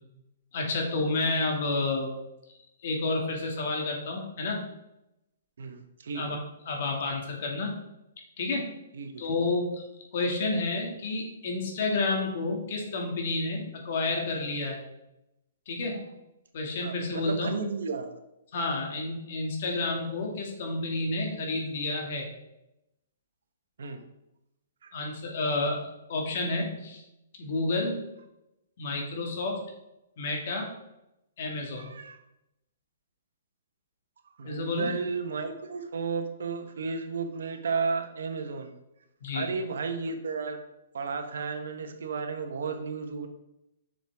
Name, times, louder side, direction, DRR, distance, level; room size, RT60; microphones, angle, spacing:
voice 1, 0.5-2.2 2.8-4.6 6.1-6.4 6.7-7.7 8.4-8.7 9.2-9.8 10.1-14.8 15.7-16.0 16.5-17.5 18.5-22.3 24.9-27.0 27.4-28.0 28.8-29.7 30.2-30.7 31.4-31.9 34.4-34.9 39.2-39.5, left 3 dB, 55° left, 1 dB, 2.2 m, -30 dB
voice 2, 5.6-6.4 8.9-9.2 16.8-18.1 23.8-24.0 24.8-24.9 31.8-32.2 34.4-38.7 39.3-40.6 40.9-43.3, right 5 dB, 75° right, 6 dB, 1.2 m, -33 dB
7.7 x 6.4 x 3.5 m, 0.88 s
hypercardioid pair, 145°, 0 cm